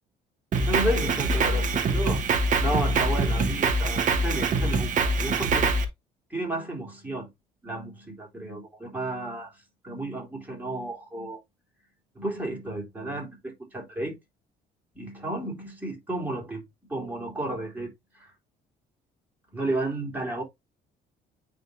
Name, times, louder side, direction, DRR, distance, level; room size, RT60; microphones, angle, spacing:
Drum kit, 0.5-5.8, right 3 dB, 50° right, 1.5 m, -24 dB
voice 1, 0.7-2.2 2.6-5.7 6.3-7.3 7.6-9.5 9.8-11.4 12.1-14.2 14.9-16.6 16.9-18.3 19.5-20.4, right 1 dB, 10° right, 4.1 m, -32 dB
9.3 x 3.9 x 2.8 m
cardioid pair, 110°, 17 cm